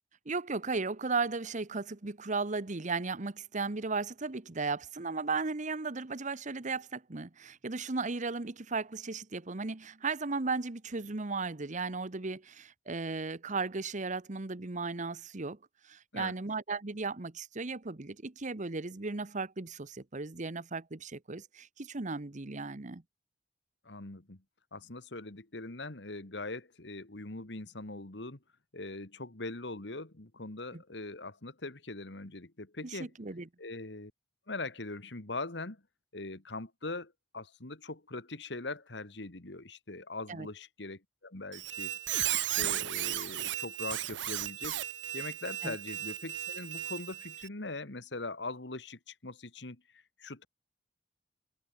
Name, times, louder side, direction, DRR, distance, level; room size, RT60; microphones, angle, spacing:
voice 1, 0.3-15.6 15.8-23.0 30.7-30.8 32.8-33.5 40.3-40.5 45.6-45.8, right 4 dB, 45° right, 1.1 m, -36 dB
voice 2, 23.8-24.4 24.7-28.4 28.7-33.1 33.6-34.1 34.5-35.8 36.1-42.0 42.3-44.8 45.1-50.5, left 2 dB, 70° left, 2.1 m, -41 dB
Squeak, 41.5-47.5, right 13 dB, 85° right, 0.8 m, -35 dB
head